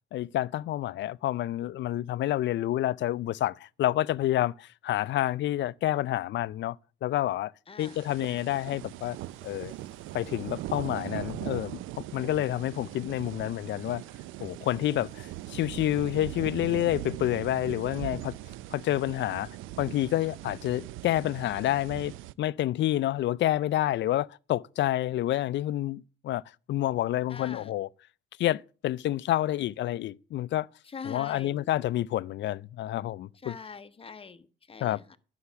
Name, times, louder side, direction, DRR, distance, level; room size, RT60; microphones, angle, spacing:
voice 1, 0.1-6.8 7.0-7.5 7.8-9.2 9.4-9.7 10.1-11.8 12.1-14.0 14.4-18.4 18.7-19.5 19.8-26.4 26.7-27.9 28.4-30.7 31.0-33.6 34.8-35.0, left 14 dB, 65° left, 0.5 m, -28 dB
voice 2, 7.7-8.0 27.3-27.7 30.9-31.7 33.4-35.2, left 5 dB, 30° left, 1.1 m, -43 dB
sound 1, 7.8-22.3, right 15 dB, 90° right, 0.5 m, -40 dB
sound 2, 8.4-17.8, equal, 5° right, 7.7 m, -68 dB
11.5 x 5.8 x 6.8 m
cardioid pair, 90°, 20 cm